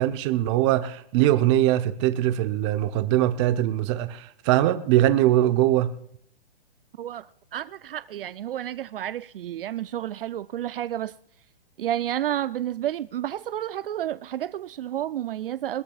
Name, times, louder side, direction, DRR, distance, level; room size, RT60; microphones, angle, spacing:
voice 1, 0.0-5.9, right 13 dB, 30° right, 0.8 m, -22 dB
voice 2, 7.5-11.1 11.8-15.8, right 11 dB, 70° right, 0.5 m, -30 dB
20.5 x 20.5 x 2.4 m
hypercardioid pair, 140°, 29 cm